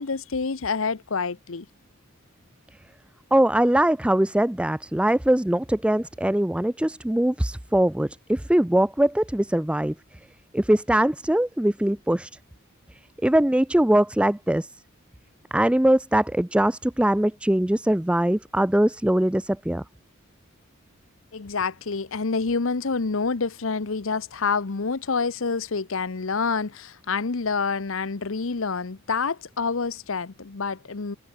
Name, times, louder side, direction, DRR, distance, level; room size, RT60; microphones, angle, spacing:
voice 1, 0.0-1.7 21.3-31.2, left 4 dB, 65° left, 0.8 m, -27 dB
voice 2, 3.3-10.2 10.5-12.3 12.9-14.8 15.5-19.8, right 1 dB, 5° right, 0.4 m, -22 dB
head